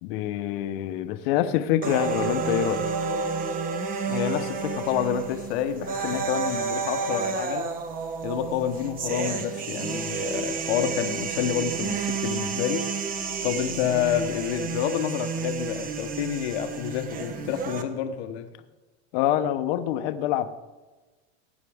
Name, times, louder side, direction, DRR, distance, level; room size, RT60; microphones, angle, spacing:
voice 1, 0.0-2.8 6.1-6.2 19.1-20.5, left 11 dB, 60° left, 1.0 m, -26 dB
sound 1, 1.8-17.8, right 5 dB, 25° right, 1.0 m, -30 dB
voice 2, 4.1-7.7 8.2-12.9 13.4-18.5, left 9 dB, 80° left, 1.2 m, -28 dB
18.0 x 9.1 x 3.5 m
supercardioid pair, 150°, 32 cm